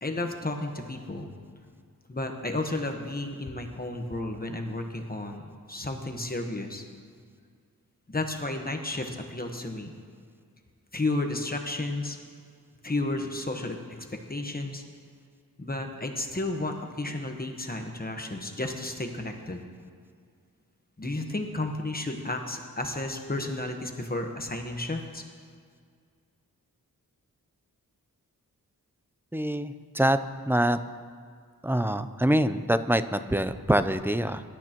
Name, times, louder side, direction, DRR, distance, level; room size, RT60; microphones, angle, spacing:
voice 1, 0.0-1.3 2.1-6.8 8.1-9.9 10.9-12.2 12.8-13.8 14.1-14.8 15.6-19.6 21.0-25.2, left 2 dB, 25° left, 3 dB, 1.2 m, -32 dB
voice 2, 29.3-30.2 30.5-30.8 31.6-34.4, right 1 dB, 5° right, 11 dB, 0.5 m, -25 dB
24.5 x 12.5 x 3.0 m, 2.1 s
wide cardioid pair, 120°, 35 cm